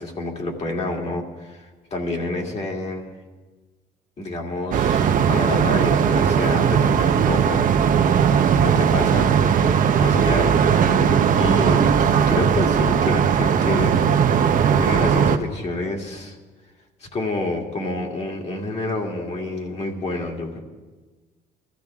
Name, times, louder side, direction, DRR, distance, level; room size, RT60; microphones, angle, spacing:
voice 1, 0.0-3.1 4.2-7.6 8.6-11.9 12.3-16.4 17.0-20.6, left 2 dB, 40° left, 1 dB, 2.6 m, -29 dB
sound 1, 4.7-15.4, right 7 dB, 50° right, 0.9 m, -18 dB
22.5 x 14.0 x 3.6 m, 1.3 s
cardioid pair, 110°, 17 cm